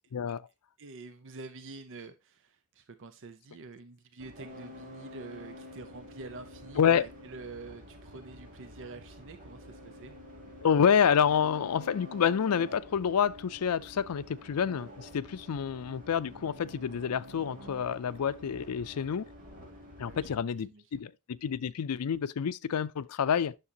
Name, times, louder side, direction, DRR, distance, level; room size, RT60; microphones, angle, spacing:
voice 1, 0.8-10.1 20.1-21.1, right 3 dB, 60° right, 0.7 m, -47 dB
sound 1, 4.2-20.4, left 1 dB, 40° right, 3.3 m, -49 dB
voice 2, 10.6-19.3 20.0-21.1 21.4-23.6, left 7 dB, 90° left, 0.4 m, -28 dB
9.8 x 6.6 x 2.9 m
head